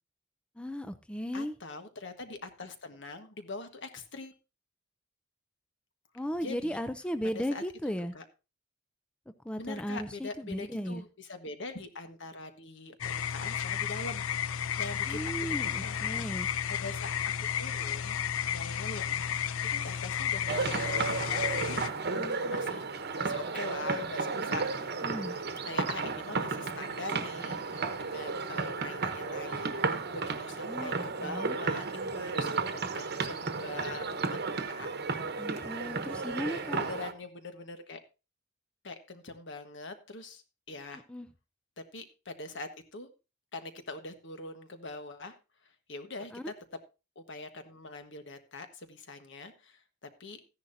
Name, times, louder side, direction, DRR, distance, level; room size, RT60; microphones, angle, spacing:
voice 1, 0.6-1.5 6.1-8.1 9.4-11.0 15.1-16.5 25.0-25.3 30.7-31.6 35.4-36.8 41.1-41.3 46.3-46.5, equal, 5° left, 10 dB, 0.5 m, -36 dB
voice 2, 1.3-4.3 6.4-6.8 7.3-7.6 8.1-8.2 9.6-16.2 16.7-18.2 18.5-21.8 22.1-22.9 23.2-24.6 25.6-34.4 34.7-34.9 36.5-38.0 38.8-40.4 40.7-41.0 41.8-43.1 43.5-45.4 45.6-46.5 47.1-50.4, left 3 dB, 65° left, 8 dB, 1.4 m, -43 dB
sound 1, 13.0-21.9, left 8 dB, 80° left, 0.5 m, -32 dB
sound 2, 20.5-37.1, right 4 dB, 55° right, 1.1 m, -33 dB
14.5 x 10.5 x 2.7 m, 0.29 s
head